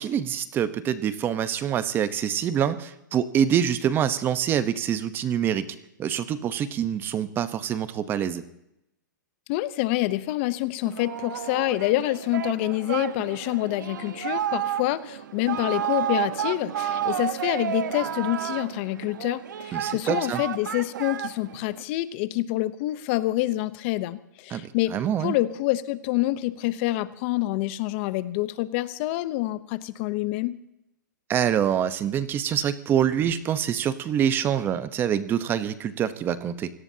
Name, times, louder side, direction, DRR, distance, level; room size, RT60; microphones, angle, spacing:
voice 1, 0.0-5.7 6.0-8.4 19.7-20.4 24.5-25.3 31.3-36.7, right 9 dB, 20° right, 13 dB, 0.9 m, -25 dB
voice 2, 9.5-24.9 25.2-30.6, left 17 dB, 40° left, 15 dB, 0.8 m, -27 dB
Singing, 10.8-21.8, right 10 dB, 70° right, 1.1 m, -31 dB
26.5 x 17.5 x 2.8 m, 0.83 s
hypercardioid pair, 145°, 10 cm